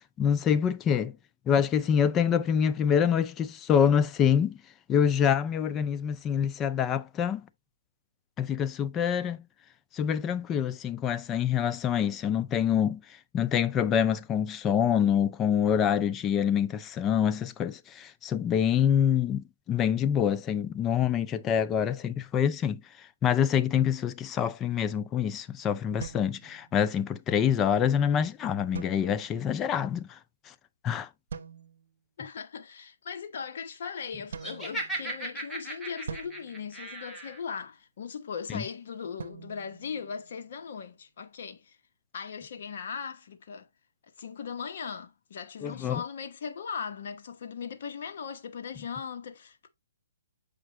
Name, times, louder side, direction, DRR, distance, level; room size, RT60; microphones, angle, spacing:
voice 1, 0.2-1.1 1.5-4.6 4.9-7.4 8.4-9.4 9.9-13.0 13.3-22.8 23.2-30.2 30.8-31.1 45.6-46.0, left 8 dB, 15° left, 0.4 m, -26 dB
sound 1, 26.0-27.1 28.7-29.5 31.3-32.0 34.3-35.4 36.1-37.5 39.2-40.7, right 6 dB, 65° right, 0.8 m, -44 dB
voice 2, 32.2-41.8 42.1-43.7 44.2-49.7, left 6 dB, 50° left, 1.1 m, -39 dB
Laughter, 34.4-37.4, right 2 dB, ahead, 1.2 m, -37 dB
7.4 x 5.0 x 2.9 m
hypercardioid pair, 160°, 0 cm